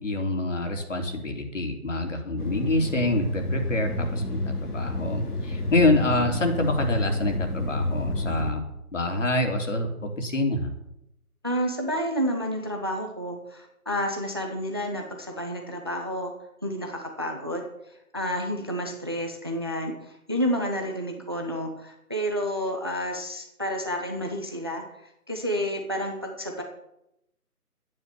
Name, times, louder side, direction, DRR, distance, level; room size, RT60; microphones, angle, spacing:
voice 1, 0.0-8.6 8.9-10.7, left 2 dB, 55° left, 4 dB, 3.4 m, -26 dB
sound 1, 2.4-8.5, left 2 dB, 80° left, 3.1 m, -29 dB
voice 2, 11.4-16.3 16.6-17.6 17.9-26.6, equal, 15° right, 3 dB, 0.8 m, -30 dB
12.0 x 9.9 x 7.0 m, 0.84 s
figure-of-eight pair, 165°, 45 cm